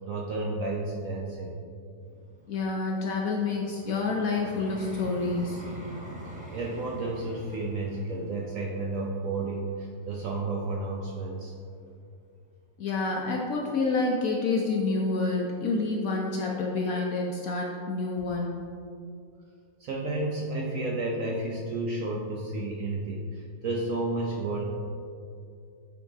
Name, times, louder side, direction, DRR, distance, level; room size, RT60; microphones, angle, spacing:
voice 1, 0.0-1.5 6.2-11.5 19.8-24.6, right 2 dB, 65° right, -1 dB, 0.8 m, -32 dB
Vehicle, 2.0-11.1 11.7-11.9, equal, 5° right, 0.6 m, -45 dB
voice 2, 2.5-5.6 12.8-18.6, left 3 dB, 65° left, -1 dB, 0.9 m, -28 dB
8.6 x 4.0 x 3.5 m, 2.4 s
omnidirectional pair, 2.0 m